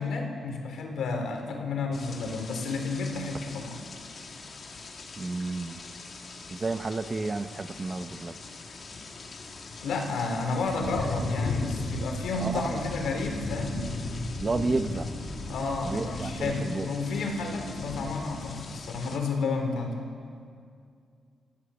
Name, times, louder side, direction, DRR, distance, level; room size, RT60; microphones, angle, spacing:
voice 1, 0.0-3.9 9.8-13.9 15.5-20.1, left 3 dB, 80° left, 4 dB, 3.8 m, -31 dB
sound 1, 1.9-19.2, left 3 dB, 45° left, 2.3 m, -38 dB
voice 2, 5.2-5.8 6.5-8.3 12.4-12.8 14.4-15.1 15.8-16.9, right 3 dB, 25° right, 10 dB, 0.8 m, -31 dB
sound 2, 10.6-16.3, equal, ahead, 4.9 m, -42 dB
27.5 x 16.0 x 7.1 m, 2.3 s
wide cardioid pair, 140°, 0 cm